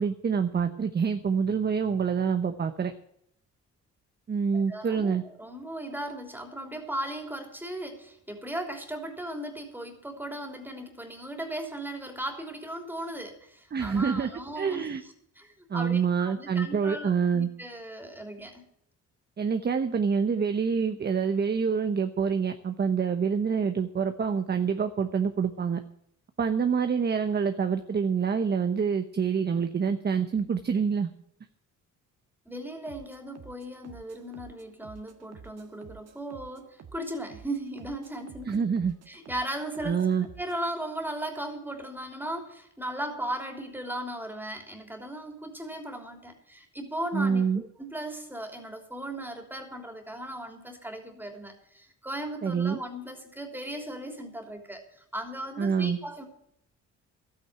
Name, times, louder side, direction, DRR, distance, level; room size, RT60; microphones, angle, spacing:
voice 1, 0.0-2.9 4.3-5.2 13.7-14.3 14.6-15.0 15.7-17.5 19.4-25.8 26.4-31.1 38.5-38.9 39.8-40.3 47.1-47.6 52.4-52.8 55.6-56.0, right 6 dB, 35° right, 8 dB, 1.0 m, -26 dB
voice 2, 4.5-18.6 32.4-38.6 39.1-40.0 40.4-56.3, right 1 dB, 5° right, 4 dB, 3.3 m, -37 dB
sound 1, 32.9-40.6, right 7 dB, 55° right, 1.6 m, -51 dB
12.5 x 9.0 x 7.4 m, 0.73 s
cardioid pair, 90°, 30 cm